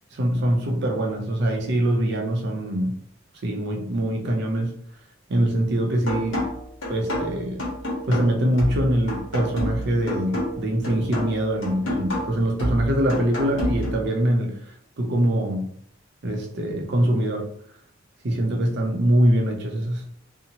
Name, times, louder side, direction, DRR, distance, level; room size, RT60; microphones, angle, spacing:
voice 1, 0.1-2.9 3.4-4.7 5.3-6.4 6.9-7.7 8.1-14.7 15.0-15.7 16.2-17.4 18.2-20.0, right 1 dB, 60° right, 2 dB, 0.5 m, -23 dB
sound 1, 6.1-14.1, equal, 70° left, 1.0 m, -29 dB
2.7 x 2.0 x 2.8 m, 0.64 s
head